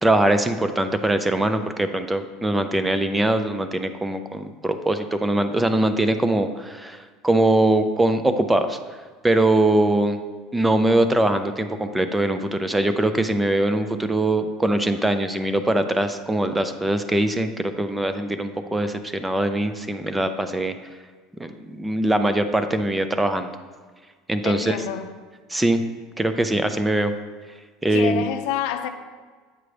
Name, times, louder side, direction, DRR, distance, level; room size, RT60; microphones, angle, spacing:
voice 1, 0.0-8.8 9.2-10.2 10.5-20.7 21.4-23.5 24.3-24.8 25.5-25.8 26.2-27.1 27.8-28.3, right 1 dB, 10° right, 0.4 m, -22 dB
voice 2, 24.4-25.1 27.9-28.9, left 11 dB, 70° left, 0.5 m, -28 dB
7.9 x 4.9 x 3.3 m
supercardioid pair, 130°, 0 cm